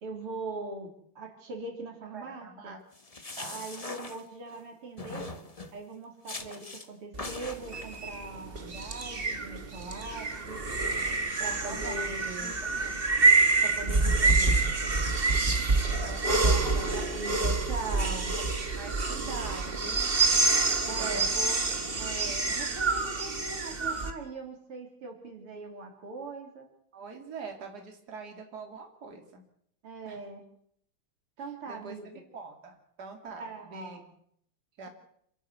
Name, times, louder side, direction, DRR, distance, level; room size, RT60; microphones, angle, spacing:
voice 1, 0.0-2.7 3.5-5.3 5.7-10.6 11.4-12.5 13.6-14.6 16.6-18.3 20.8-21.6 22.0-26.7 29.8-30.4 31.4-32.1 33.4-34.0, right 3 dB, 85° right, 3 dB, 4.2 m, -40 dB
voice 2, 2.1-2.8 3.4-3.7 11.4-12.0 12.4-12.9 16.0-17.2 18.2-18.4 18.8-20.1 21.0-21.3 21.6-21.9 26.9-29.4 30.0-30.2 31.7-34.2 34.8-34.9, right 4 dB, 45° right, 3 dB, 3.3 m, -44 dB
sound 1, 2.9-4.6 5.0-5.8 6.3-6.9 7.2-8.0, left 2 dB, 20° left, 1.3 m, -41 dB
sound 2, 7.1-24.1, right 3 dB, 30° right, 1.7 m, -27 dB
27.5 x 12.5 x 8.2 m, 0.70 s
omnidirectional pair, 2.4 m